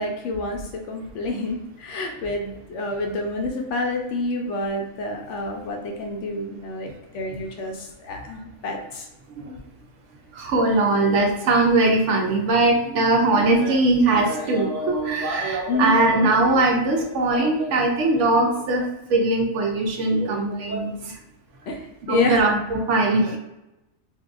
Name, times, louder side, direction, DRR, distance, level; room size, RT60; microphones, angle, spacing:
voice 1, 0.0-9.1 15.7-16.0 21.7-22.4, left 2 dB, 70° left, 2 dB, 0.8 m, -28 dB
voice 2, 10.4-21.1 22.1-23.4, right 2 dB, 70° right, 2 dB, 0.9 m, -20 dB
3.7 x 2.6 x 2.3 m, 0.94 s
omnidirectional pair, 1.4 m